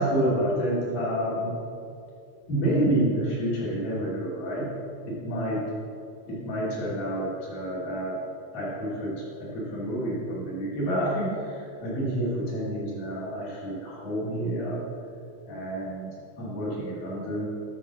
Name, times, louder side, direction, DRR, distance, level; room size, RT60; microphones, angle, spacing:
voice 1, 0.0-1.6 2.5-4.7 5.1-5.6 6.3-8.2 8.5-14.8 15.5-16.1 16.4-17.5, right 1 dB, 70° left, -7 dB, 4.4 m, -29 dB
10.0 x 6.6 x 6.2 m, 2.5 s
omnidirectional pair, 4.0 m